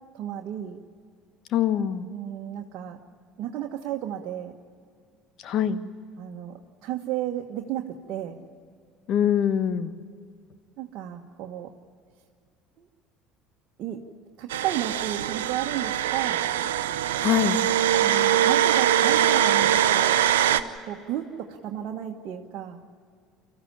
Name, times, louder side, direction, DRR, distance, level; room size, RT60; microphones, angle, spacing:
voice 1, 0.1-0.8 2.1-3.0 3.4-4.5 6.2-8.4 10.8-11.7 12.8-12.9 13.8-14.0 14.4-16.4 18.0-20.2 20.8-22.8, right 11 dB, 55° right, -1 dB, 1.4 m, -33 dB
voice 2, 1.5-2.1 5.4-5.8 9.1-10.0 17.2-17.6, left 9 dB, 55° left, 11 dB, 1.3 m, -23 dB
sound 1, 14.5-20.6, right 11 dB, 80° right, 0.8 m, -22 dB
24.5 x 15.0 x 10.0 m, 2.2 s
hypercardioid pair, 70°, 0 cm